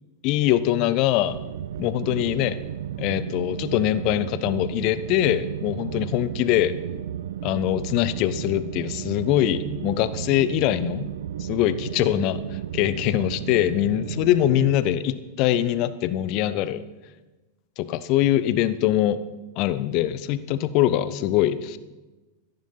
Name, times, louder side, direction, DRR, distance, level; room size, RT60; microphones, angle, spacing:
voice 1, 0.2-1.4 1.8-2.6 3.0-6.8 7.4-11.1 11.4-16.8 17.8-19.2 19.6-21.8, left 13 dB, 40° left, 14 dB, 0.8 m, -23 dB
sound 1, 1.3-14.8, right 10 dB, 60° right, 0.4 m, -33 dB
14.0 x 10.5 x 5.7 m, 1.2 s
figure-of-eight pair, 90°, 0 cm